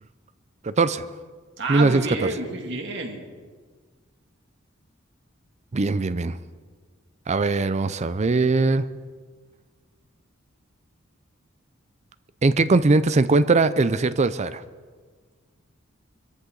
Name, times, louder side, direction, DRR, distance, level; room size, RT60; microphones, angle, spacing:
voice 1, 0.6-1.1 1.7-2.1 5.7-6.4 7.3-8.9 12.4-14.6, right 3 dB, 35° right, 14 dB, 0.5 m, -20 dB
voice 2, 1.6-3.2, right 3 dB, 60° right, 1 dB, 2.5 m, -29 dB
23.5 x 14.0 x 3.9 m, 1.5 s
head